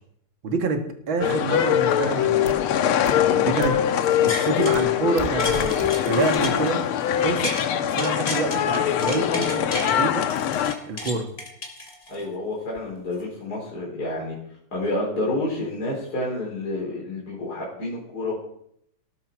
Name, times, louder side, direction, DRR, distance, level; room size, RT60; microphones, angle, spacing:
voice 1, 0.4-2.5 3.3-3.8 4.2-6.8 7.2-7.5 7.9-10.3 10.9-11.3, right 3 dB, 65° right, 5 dB, 2.6 m, -27 dB
sound 1, 1.2-10.7, left 10 dB, 85° left, 1.8 m, -22 dB
sound 2, 2.5-2.6 3.1-3.2 3.6-3.7 4.7-4.8 5.2-5.9 6.3-6.4, right 2 dB, 25° right, 1.4 m, -32 dB
sound 3, 4.0-4.9 5.2-7.7 8.0-9.9 10.3-12.3 12.8-12.9, left 2 dB, 25° left, 3.1 m, -33 dB
voice 2, 12.1-14.3 14.7-18.4, left 2 dB, 45° left, -5 dB, 4.6 m, -29 dB
18.5 x 13.0 x 4.7 m, 0.70 s
omnidirectional pair, 2.4 m